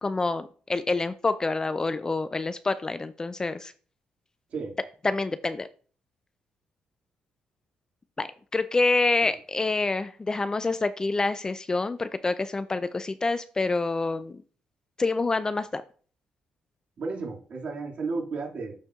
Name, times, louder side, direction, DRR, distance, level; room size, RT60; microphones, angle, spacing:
voice 1, 0.0-3.7 5.0-5.7 8.2-14.4 15.0-15.8, left 3 dB, 25° left, 13 dB, 0.4 m, -27 dB
voice 2, 17.0-18.8, right 4 dB, 55° right, -1 dB, 2.2 m, -33 dB
13.0 x 4.3 x 2.4 m, 0.42 s
cardioid pair, 90°, 3 cm